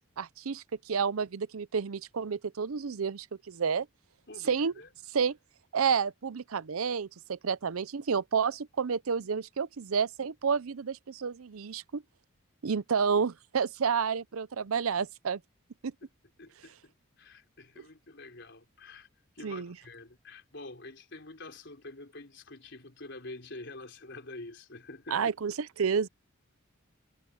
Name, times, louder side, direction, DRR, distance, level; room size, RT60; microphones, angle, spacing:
voice 1, 0.2-3.9 4.5-4.7 5.1-5.4 5.7-12.0 12.6-15.4 15.8-15.9 19.4-19.7 25.1-26.1, right 6 dB, 90° right, 0.6 m, -30 dB
voice 2, 4.3-4.9 16.4-16.9 17.2-19.1 19.4-25.2, left 2 dB, 55° left, 4.5 m, -47 dB
head